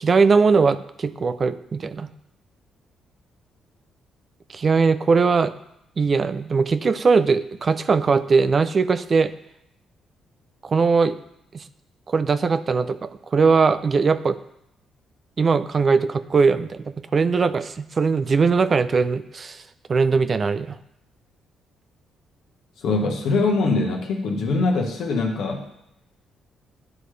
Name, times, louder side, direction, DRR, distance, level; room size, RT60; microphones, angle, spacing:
voice 1, 0.0-2.1 4.5-5.5 6.0-9.3 10.6-11.2 11.5-11.6 12.1-14.4 15.4-19.6 19.9-20.8, right 4 dB, 40° right, 12 dB, 0.4 m, -20 dB
voice 2, 22.8-25.6, left 3 dB, 80° left, 2 dB, 1.2 m, -22 dB
11.0 x 4.0 x 3.3 m, 0.79 s
cardioid pair, 90°, 0 cm